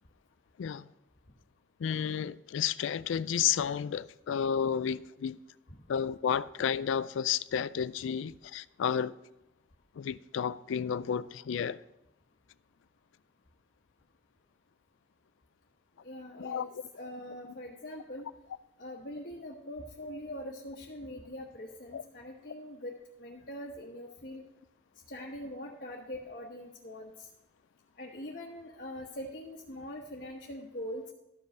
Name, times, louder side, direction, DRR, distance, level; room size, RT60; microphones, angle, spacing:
voice 1, 1.8-5.4 5.9-9.1 10.0-11.8 16.4-16.8 21.9-22.0, left 8 dB, 85° left, 0.3 m, -31 dB
voice 2, 16.0-16.7 17.0-18.3 18.8-22.9 23.2-24.4 25.1-27.3 28.0-31.1, left 1 dB, 50° left, 1.1 m, -42 dB
13.0 x 5.3 x 6.0 m
head